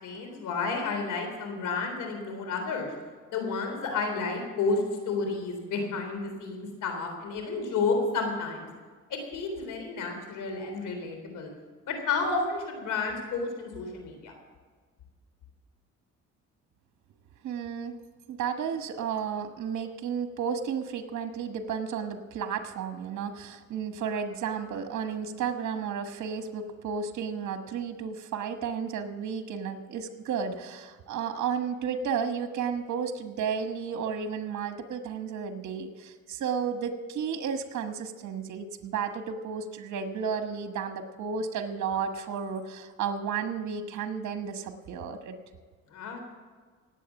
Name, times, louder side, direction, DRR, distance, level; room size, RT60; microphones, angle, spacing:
voice 1, 0.0-2.9 3.3-8.7 9.1-11.5 11.9-14.3 45.9-46.2, left 4 dB, 85° left, 4 dB, 3.7 m, -31 dB
voice 2, 17.4-17.9 18.3-45.4, right 6 dB, 70° right, 7 dB, 1.4 m, -33 dB
18.5 x 8.2 x 7.1 m, 1.5 s
cardioid pair, 90°, 30 cm